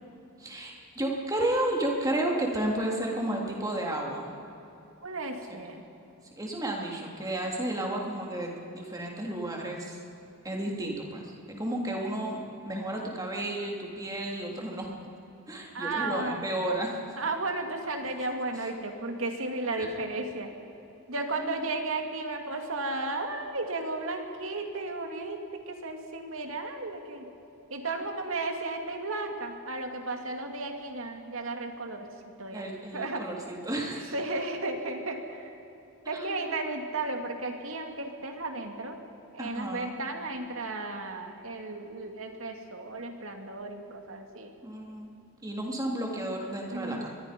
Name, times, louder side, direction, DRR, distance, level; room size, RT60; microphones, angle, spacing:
voice 1, 0.4-4.3 5.5-5.6 6.4-10.0 10.4-12.4 12.7-14.9 15.5-16.9 19.8-19.9 21.4-21.5 32.5-34.1 36.1-36.4 39.4-39.9 44.6-45.1 45.4-47.1, right 1 dB, 15° right, -1 dB, 3.2 m, -32 dB
voice 2, 5.0-5.8 15.7-16.4 17.2-20.5 21.1-25.4 25.7-27.2 27.7-32.1 32.4-32.7 32.9-33.3 34.1-35.6 36.1-39.0 39.3-44.5 46.7-47.1, right 2 dB, 65° right, 4 dB, 2.4 m, -34 dB
25.5 x 22.0 x 5.3 m, 3.0 s
head